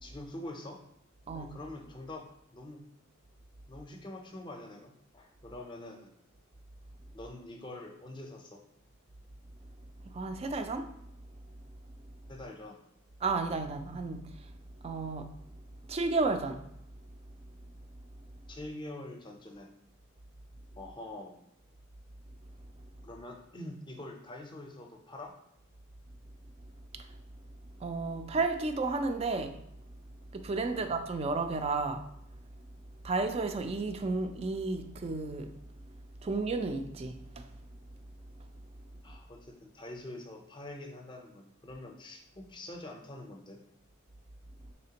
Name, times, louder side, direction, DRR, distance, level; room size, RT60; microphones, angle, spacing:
voice 1, 0.0-0.8 1.3-2.3 2.5-2.8 3.7-6.1 7.1-8.6 12.3-12.8 18.5-19.7 20.8-21.4 23.0-25.4 30.7-30.9 39.0-43.6, left 1 dB, 20° left, 2 dB, 0.5 m, -45 dB
voice 2, 10.1-10.9 13.2-14.5 14.8-15.3 15.9-16.6 26.9-27.1 27.8-29.6 30.3-32.1 33.0-35.5 36.2-37.5, right 3 dB, 30° right, 7 dB, 0.3 m, -32 dB
4.2 x 3.2 x 2.8 m, 0.76 s
head